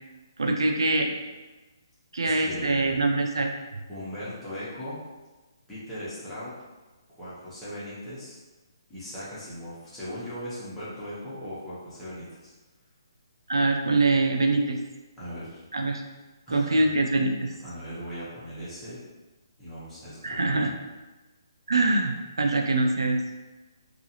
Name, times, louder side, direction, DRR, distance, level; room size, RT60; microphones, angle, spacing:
voice 1, 0.4-1.1 2.1-3.5 13.5-14.8 15.7-16.0 16.5-17.5 20.2-20.7 21.7-23.2, right 2 dB, 85° right, 3 dB, 0.4 m, -24 dB
voice 2, 2.2-2.9 3.9-5.0 5.7-6.5 7.1-8.4 8.9-12.5 15.2-15.6 16.5-17.0 17.6-19.0 19.6-20.6, equal, 10° left, -12 dB, 0.9 m, -38 dB
2.4 x 2.4 x 2.8 m, 1.2 s
hypercardioid pair, 150°, 2 cm